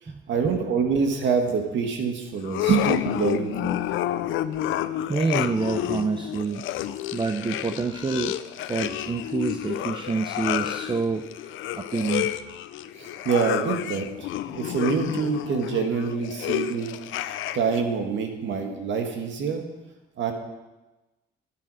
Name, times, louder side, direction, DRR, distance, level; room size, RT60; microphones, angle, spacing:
voice 1, 0.3-3.8 13.0-19.6 20.2-20.3, right 5 dB, 70° right, 4 dB, 1.9 m, -26 dB
sound 1, 2.4-17.8, left 12 dB, 85° left, 0.5 m, -30 dB
voice 2, 5.1-6.6 7.1-12.3, right 4 dB, 25° right, 7 dB, 0.7 m, -27 dB
12.0 x 9.8 x 5.0 m, 1.1 s
cardioid pair, 90°, 20 cm